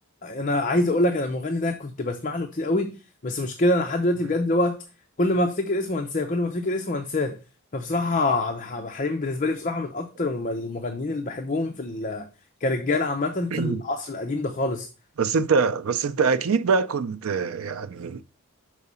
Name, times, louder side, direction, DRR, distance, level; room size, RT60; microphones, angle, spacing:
voice 1, 0.2-3.0 3.2-4.8 5.2-7.4 7.7-12.3 12.6-14.9, left 2 dB, 35° left, 0.6 m, -25 dB
voice 2, 13.5-13.8 15.2-18.2, right 5 dB, 70° right, 0.5 m, -24 dB
5.9 x 4.8 x 5.5 m
head